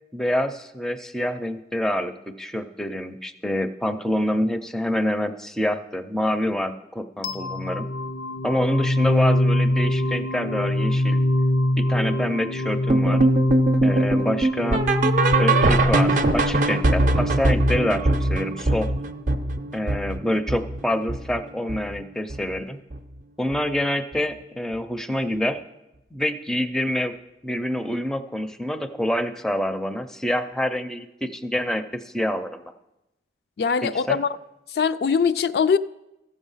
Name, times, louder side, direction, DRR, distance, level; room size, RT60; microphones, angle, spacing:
voice 1, 0.1-7.8 8.4-11.2 11.8-13.2 13.8-14.8 15.4-18.9 19.7-22.8 23.4-25.6 26.1-27.1 27.4-32.6 33.8-34.2, left 1 dB, 5° left, 0.4 m, -26 dB
sound 1, 7.2-18.2, left 1 dB, 85° left, 0.7 m, -24 dB
sound 2, 12.9-22.0 22.3-22.6 22.9-23.0 23.5-23.6 24.1-24.2, right 2 dB, 45° right, 0.5 m, -22 dB
voice 2, 33.6-34.3 34.7-35.8, left 6 dB, 65° left, 0.3 m, -21 dB
14.0 x 7.2 x 5.5 m
head